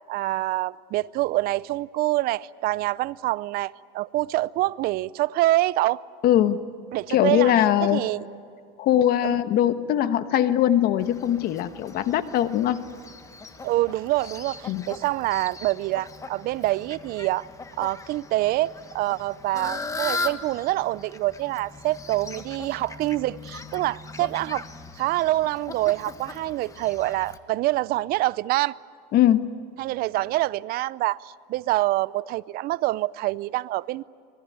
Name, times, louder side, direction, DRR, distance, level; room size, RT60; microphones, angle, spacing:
voice 1, 0.1-6.0 6.9-7.5 7.9-8.2 9.2-9.4 13.6-17.5 17.8-24.6 25.0-28.7 29.8-34.0, right 17 dB, 50° right, 0.5 m, -26 dB
voice 2, 6.2-6.6 7.1-8.0 8.8-12.8 14.7-14.9 29.1-29.5, left 11 dB, 50° left, 1.3 m, -21 dB
Fowl, 11.0-27.4, left 3 dB, 15° left, 1.3 m, -39 dB
25.5 x 21.0 x 8.7 m
supercardioid pair, 130°, 20 cm